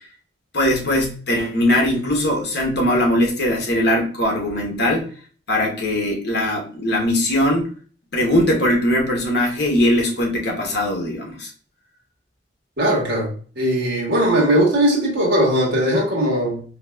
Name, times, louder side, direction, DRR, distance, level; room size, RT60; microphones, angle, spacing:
voice 1, 0.5-5.1 5.5-7.7 8.1-11.5, left 1 dB, 60° left, 1.0 m, -20 dB
voice 2, 12.8-16.6, right 1 dB, 65° right, 1.3 m, -19 dB
3.9 x 2.8 x 2.3 m
head